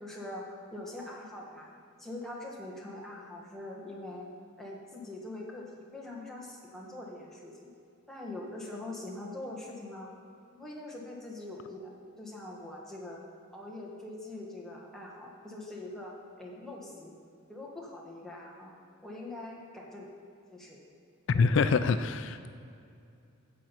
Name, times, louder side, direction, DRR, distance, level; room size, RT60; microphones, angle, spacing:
voice 1, 0.0-1.7 2.0-4.3 4.6-7.7 8.1-10.1 10.5-11.9 12.2-13.2 13.5-17.1 17.5-18.7 19.0-20.1 20.5-20.8 21.3-21.5, left 2 dB, ahead, -3 dB, 1.3 m, -43 dB
voice 2, 21.3-22.5, left 4 dB, 65° left, 11 dB, 0.3 m, -25 dB
9.2 x 7.6 x 5.7 m, 2.5 s
head